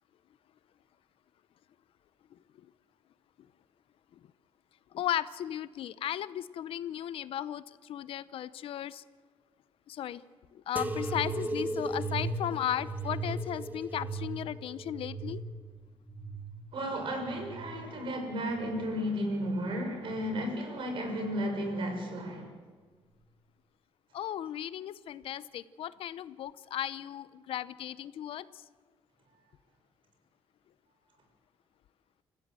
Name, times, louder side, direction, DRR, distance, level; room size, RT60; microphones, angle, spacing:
voice 1, 2.3-2.7 4.1-4.2 4.9-9.0 9.9-10.2 10.5-15.4 24.1-28.6, left 11 dB, 70° left, 16 dB, 0.8 m, -36 dB
sound 1, 10.8-18.0 18.5-19.3 20.0-20.6 21.5-21.6, right 2 dB, 20° right, 1.3 m, -37 dB
voice 2, 16.7-22.5, equal, 60° right, 4 dB, 6.2 m, -33 dB
26.0 x 15.5 x 7.7 m, 1.5 s
cardioid pair, 100°, 10 cm